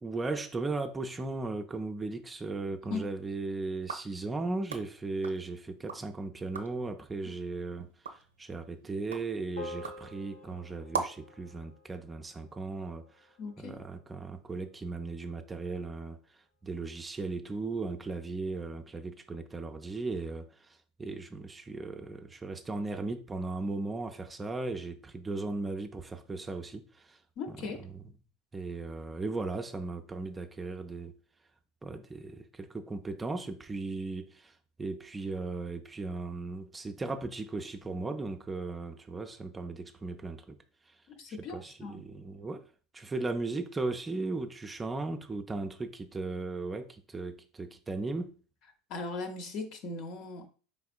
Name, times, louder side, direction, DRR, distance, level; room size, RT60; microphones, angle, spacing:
voice 1, 0.0-13.3 13.6-16.2 16.6-27.2 27.5-28.0 28.5-31.2 31.8-40.6 40.9-41.0 41.3-42.7 42.9-48.4, right 3 dB, 20° right, 0.4 m, -37 dB
sound 1, 3.8-6.1 6.4-6.9 7.4-11.4, right 5 dB, 85° right, 0.4 m, -42 dB
sound 2, 9.6-14.1, left 3 dB, 75° left, 1.2 m, -48 dB
voice 2, 13.4-13.8 27.4-27.9 41.1-42.1 48.9-50.5, left 3 dB, 55° left, 0.7 m, -39 dB
4.2 x 3.5 x 2.3 m
hypercardioid pair, 80°, 0 cm